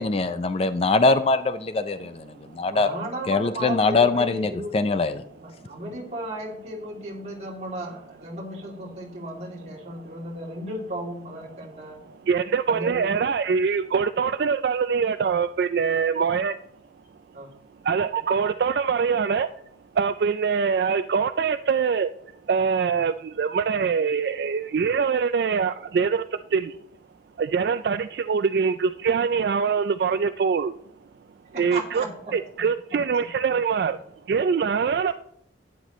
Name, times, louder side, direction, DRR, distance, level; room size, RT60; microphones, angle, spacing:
voice 1, 0.0-2.2 2.5-2.9 3.3-5.2, left 3 dB, 35° left, 11 dB, 0.4 m, -22 dB
voice 2, 2.7-4.7 5.4-12.0 12.7-13.1 17.3-17.5 31.5-32.1, right 1 dB, 40° right, -4 dB, 2.7 m, -35 dB
voice 3, 12.1-16.6 17.8-19.5 19.9-22.1 22.5-26.8 27.4-30.7 31.5-32.0 32.3-34.0 34.3-35.1, right 6 dB, 60° right, 11 dB, 0.3 m, -23 dB
12.0 x 9.8 x 3.1 m, 0.73 s
head